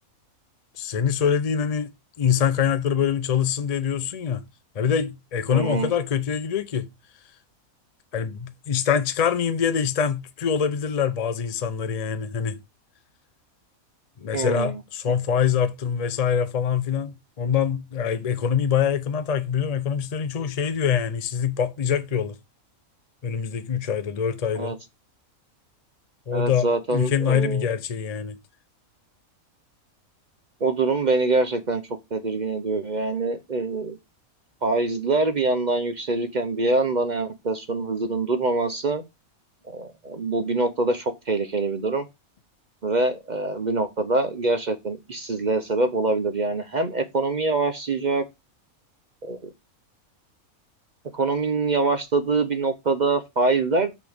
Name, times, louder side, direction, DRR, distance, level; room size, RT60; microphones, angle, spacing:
voice 1, 0.8-1.9 2.2-4.4 4.7-6.9 8.1-12.6 14.2-22.4 23.2-24.8 26.3-28.4, left 7 dB, 70° left, 0.3 m, -24 dB
voice 2, 5.5-5.9 14.3-14.8 24.6-24.7 26.3-27.7 30.6-31.8 32.1-34.0 34.6-39.0 39.7-42.1 42.8-48.2 49.2-49.4 51.1-53.9, right 3 dB, 40° right, 0.7 m, -24 dB
6.1 x 5.9 x 3.4 m
omnidirectional pair, 1.5 m